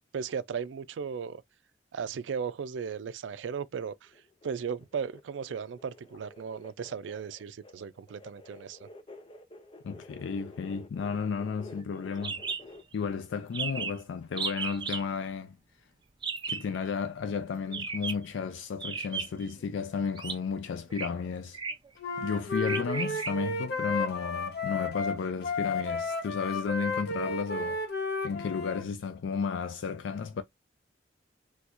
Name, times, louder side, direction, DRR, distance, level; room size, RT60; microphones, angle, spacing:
voice 1, 0.1-1.4 1.9-4.1 4.4-8.9, right 6 dB, 85° right, 0.4 m, -36 dB
sound 1, 4.1-12.8, left 2 dB, 30° left, 0.6 m, -51 dB
voice 2, 9.8-12.4 12.9-15.6 16.5-21.6 22.2-27.8 28.2-30.4, left 5 dB, 85° left, 0.4 m, -33 dB
sound 2, 12.2-12.6 12.9-13.0 13.2-13.3 13.5-14.0 14.4-15.0 16.2-16.7 17.7-18.3 18.8-19.5 20.2-20.4 20.9-21.1 21.5-21.9 22.6-23.3, right 5 dB, 25° right, 0.5 m, -34 dB
Wind instrument woodwind instrument, 22.0-28.8, left 3 dB, 60° left, 1.0 m, -32 dB
4.2 x 2.3 x 2.5 m
head